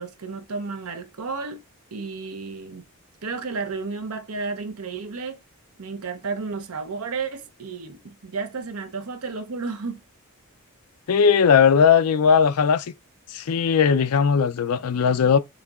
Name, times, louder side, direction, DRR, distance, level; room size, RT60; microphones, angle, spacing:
voice 1, 0.0-1.6 1.9-2.8 3.2-5.4 5.8-10.0, right 4 dB, 75° right, 0.8 m, -32 dB
voice 2, 11.1-12.9 13.3-15.4, left 6 dB, 90° left, 0.4 m, -18 dB
7.0 x 2.8 x 2.4 m
head